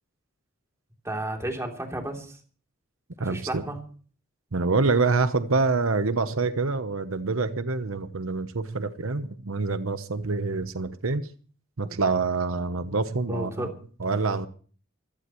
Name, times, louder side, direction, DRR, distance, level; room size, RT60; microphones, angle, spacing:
voice 1, 1.1-2.4 3.2-3.8 13.3-13.7, right 1 dB, 15° right, 3.3 m, -32 dB
voice 2, 3.2-3.6 4.5-11.3 11.8-13.7 14.0-14.5, right 4 dB, 80° right, 1.0 m, -26 dB
24.0 x 16.5 x 3.1 m
head